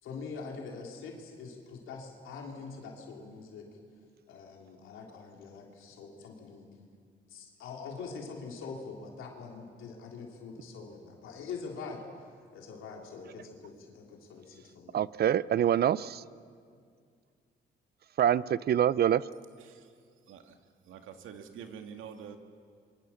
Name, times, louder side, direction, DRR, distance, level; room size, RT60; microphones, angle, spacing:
voice 1, 0.0-3.7 4.3-6.7 7.3-15.0 16.7-16.8, left 4 dB, 85° left, 0 dB, 3.5 m, -44 dB
voice 2, 14.9-16.2 18.2-19.2, right 10 dB, 55° right, 19 dB, 0.6 m, -25 dB
voice 3, 19.6-20.0 20.3-20.6 20.8-22.4, right 7 dB, 85° right, 6 dB, 2.2 m, -46 dB
26.5 x 23.5 x 7.2 m, 2.2 s
cardioid pair, 90°, 20 cm